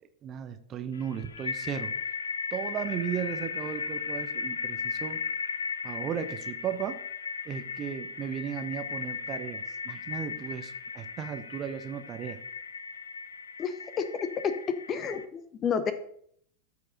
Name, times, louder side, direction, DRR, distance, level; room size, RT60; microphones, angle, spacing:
voice 1, 0.2-1.9 2.5-5.2 5.8-7.0 7.4-12.4, right 8 dB, 30° right, 9 dB, 0.7 m, -35 dB
sound 1, 1.0-15.3, left 5 dB, 70° left, 0.4 m, -36 dB
voice 2, 13.6-14.0 14.4-14.5 14.9-15.9, left 6 dB, 25° left, 12 dB, 0.8 m, -30 dB
13.5 x 4.8 x 4.0 m, 0.66 s
figure-of-eight pair, 90°, 0 cm